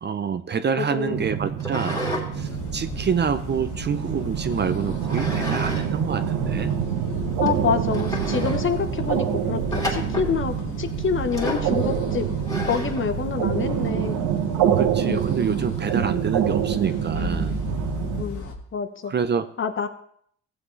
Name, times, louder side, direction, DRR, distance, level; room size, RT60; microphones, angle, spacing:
voice 1, 0.0-2.0 2.4-6.7 14.8-17.6 19.1-19.5, right 6 dB, 35° right, 11 dB, 0.6 m, -27 dB
voice 2, 0.7-1.3 7.1-12.3 12.6-14.2 15.1-15.2 18.2-18.5 18.7-19.1 19.6-19.9, left 6 dB, 40° left, 9 dB, 1.0 m, -27 dB
sound 1, 1.1-18.2, right 9 dB, 90° right, 1.2 m, -26 dB
sound 2, 1.6-2.3 2.7-4.1 5.1-5.9 6.2-6.3 6.9-7.0 7.5-7.6 7.9-8.6 9.7-10.3 11.3-11.7 12.5-13.0, left 1 dB, 10° left, 2.5 m, -31 dB
sound 3, 2.3-18.5, left 1 dB, 75° left, 1.7 m, -35 dB
15.5 x 7.8 x 3.2 m, 0.65 s
cardioid pair, 90°, 30 cm